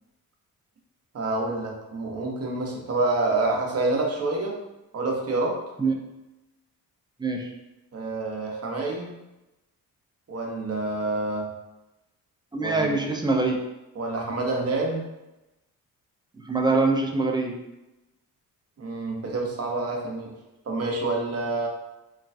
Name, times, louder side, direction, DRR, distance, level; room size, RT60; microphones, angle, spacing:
voice 1, 1.1-4.6 4.9-5.6 7.9-9.1 10.3-11.5 12.6-13.0 13.9-15.1 18.8-20.3 20.6-21.7, right 2 dB, 45° right, 0 dB, 0.7 m, -27 dB
voice 2, 7.2-7.5 12.5-13.6 16.4-17.5, right 3 dB, 15° right, 1 dB, 0.4 m, -24 dB
3.1 x 2.2 x 2.5 m, 0.98 s
cardioid pair, 75°, 35 cm